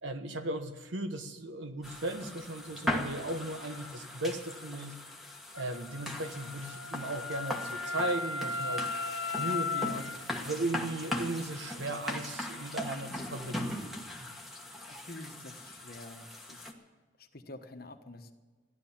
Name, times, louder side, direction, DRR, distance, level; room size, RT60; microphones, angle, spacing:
voice 1, 0.0-5.0 5.6-8.9 9.3-13.9, right 2 dB, 70° right, 8 dB, 1.2 m, -37 dB
sound 1, 1.8-16.7, left 1 dB, ahead, 1.3 m, -39 dB
Wind instrument woodwind instrument, 5.5-10.2, left 4 dB, 90° left, 1.0 m, -36 dB
voice 2, 14.9-16.8 17.2-18.3, left 2 dB, 50° left, 6 dB, 1.2 m, -48 dB
15.0 x 11.0 x 7.3 m, 1.4 s
head